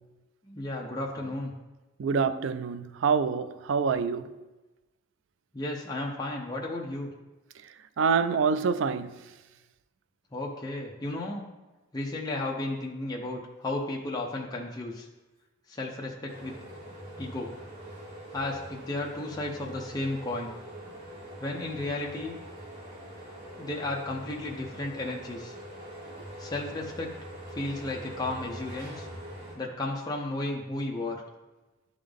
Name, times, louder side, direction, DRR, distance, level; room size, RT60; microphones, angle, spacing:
voice 1, 0.4-1.5 5.5-7.1 10.3-11.4 11.9-15.1 15.7-16.6 17.2-17.5 18.3-20.6 21.4-22.4 23.6-25.5 26.4-27.1 27.5-29.1 29.6-31.2, left 2 dB, 20° left, 0.6 m, -33 dB
voice 2, 2.0-4.3 8.0-9.3, right 5 dB, 70° right, 0.3 m, -26 dB
sound 1, 16.3-29.6, equal, 40° right, 2.0 m, -43 dB
11.0 x 3.7 x 3.5 m
head